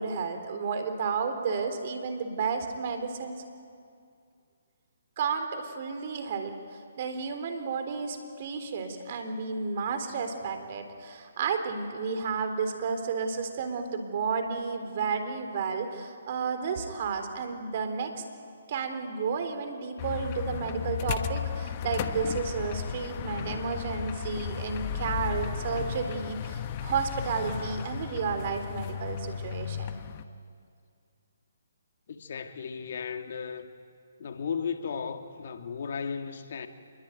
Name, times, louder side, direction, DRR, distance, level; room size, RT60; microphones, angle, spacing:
voice 1, 0.0-3.4 5.2-18.2 18.7-30.0, right 5 dB, 45° right, 3.7 m, -32 dB
sound 1, 20.0-30.2, left 8 dB, 35° left, 1.2 m, -35 dB
voice 2, 32.1-33.7 34.2-36.7, left 6 dB, 55° left, 2.1 m, -35 dB
27.5 x 22.0 x 9.3 m
hypercardioid pair, 145°, 0 cm